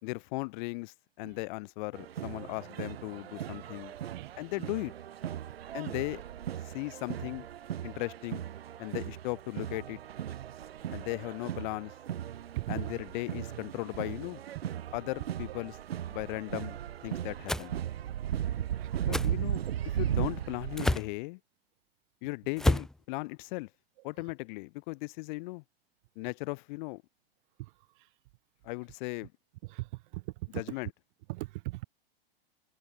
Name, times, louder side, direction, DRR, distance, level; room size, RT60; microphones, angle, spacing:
voice 1, 0.0-3.9 4.4-4.9 5.7-6.2 6.6-7.4 7.8-8.4 8.8-10.0 10.9-11.9 12.7-14.4 14.9-15.8 16.1-17.7 19.0-21.4 22.2-23.7 24.0-25.6 26.1-27.0 28.6-29.3 30.5-30.9, left 26 dB, 50° left, 1.6 m, -37 dB
sound 1, 1.9-21.0, right 10 dB, 75° right, 5.9 m, -37 dB
sound 2, 17.5-17.7 19.1-19.3 20.8-21.1 22.6-22.9, left 1 dB, ahead, 0.4 m, -28 dB
voice 2, 31.3-31.8, right 22 dB, 55° right, 2.2 m, -38 dB
hypercardioid pair, 120°, 31 cm